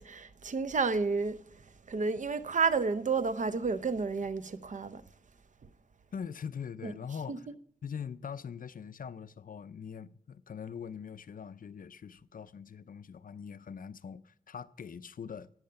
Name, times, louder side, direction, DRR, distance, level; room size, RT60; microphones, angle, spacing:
voice 1, 0.0-5.0 6.8-6.9 7.3-7.4, right 4 dB, 50° right, 0.7 m, -31 dB
voice 2, 6.1-7.4 7.8-15.5, left 7 dB, 60° left, 0.5 m, -42 dB
12.0 x 8.8 x 8.7 m
wide cardioid pair, 120°, 16 cm